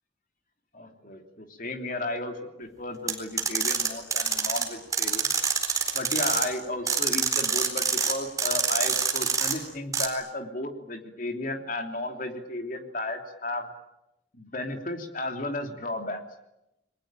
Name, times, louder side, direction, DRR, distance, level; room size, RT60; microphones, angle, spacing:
voice 1, 0.7-5.3 5.9-13.7 14.3-16.2, left 2 dB, 45° left, 5 dB, 3.1 m, -34 dB
sound 1, 3.1-4.7 4.9-6.5 6.9-8.1 8.4-9.5 9.9-10.1, right 5 dB, 20° right, 4.2 m, -26 dB
29.5 x 22.0 x 9.1 m, 0.90 s
head